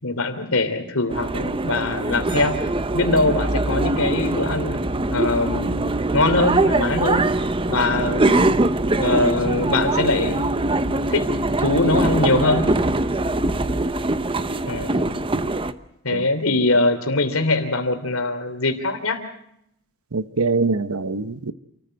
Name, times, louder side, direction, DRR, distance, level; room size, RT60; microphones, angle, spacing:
voice 1, 0.0-2.6 2.9-4.8 5.1-7.3 7.7-8.6 9.0-10.6 11.1-11.3 11.6-12.7 14.7-15.2 16.0-19.2, left 2 dB, 70° left, 3.1 m, -22 dB
sound 1, 1.1-15.7, right 2 dB, 25° right, 0.8 m, -22 dB
voice 2, 20.1-21.5, right 3 dB, 75° right, 0.9 m, -23 dB
28.5 x 14.5 x 7.7 m
head